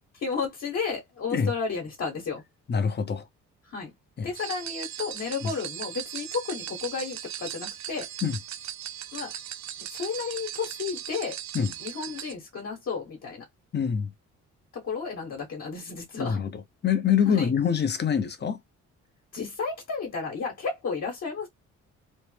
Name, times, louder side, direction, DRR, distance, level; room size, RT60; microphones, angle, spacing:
voice 1, 0.1-2.4 3.7-3.9 4.2-8.1 9.1-9.3 9.9-11.4 11.8-13.4 14.7-16.4 17.2-17.5 19.3-21.5, left 5 dB, 55° left, 1.3 m, -32 dB
voice 2, 2.7-3.3 4.2-4.3 5.4-5.5 8.2-8.4 11.5-11.7 13.7-14.1 16.2-18.6, left 7 dB, 35° left, 0.7 m, -25 dB
sound 1, 4.4-12.3, right 12 dB, 65° right, 0.6 m, -38 dB
3.1 x 2.1 x 3.2 m
cardioid pair, 90°, 30 cm